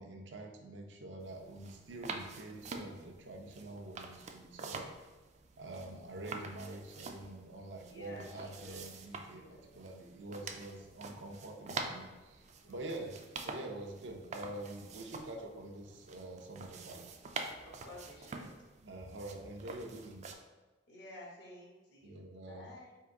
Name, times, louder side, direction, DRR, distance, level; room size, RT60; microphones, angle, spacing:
voice 1, 0.0-4.9 5.6-13.2 13.4-17.1 18.8-20.3 22.0-22.7, right 2 dB, 85° right, 3 dB, 0.6 m, -46 dB
sound 1, 1.2-20.3, right 4 dB, 40° right, 0.4 m, -47 dB
voice 2, 7.9-8.3 8.5-8.8 9.3-9.7 10.2-10.6 12.6-12.8 17.6-18.5 20.9-22.2 22.5-23.0, equal, 65° left, -3 dB, 1.2 m, -52 dB
3.7 x 2.6 x 4.7 m, 1.2 s
head